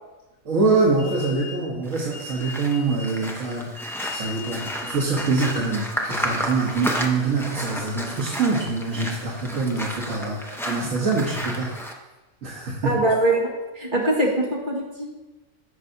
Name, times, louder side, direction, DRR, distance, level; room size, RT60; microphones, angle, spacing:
voice 1, 0.4-3.7 4.0-11.8 12.4-13.0, right 3 dB, 75° right, -3 dB, 1.5 m, -24 dB
sound 1, 1.0-7.0, left 4 dB, 60° left, 1.6 m, -40 dB
sound 2, 1.8-11.9, equal, 5° left, 0.5 m, -32 dB
voice 2, 12.8-15.1, right 1 dB, 35° right, -3 dB, 1.8 m, -23 dB
14.5 x 5.5 x 2.7 m, 1.1 s
omnidirectional pair, 1.4 m